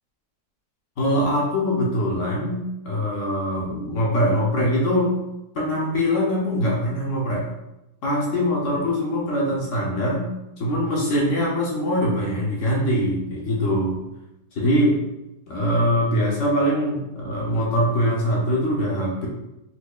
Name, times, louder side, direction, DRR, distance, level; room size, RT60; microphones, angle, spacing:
voice 1, 1.0-5.2 5.5-7.5 8.0-10.3 10.6-14.0 14.5-15.0 15.5-19.3, equal, 60° left, -4 dB, 0.8 m, -22 dB
4.3 x 2.6 x 2.3 m, 0.92 s
omnidirectional pair, 1.9 m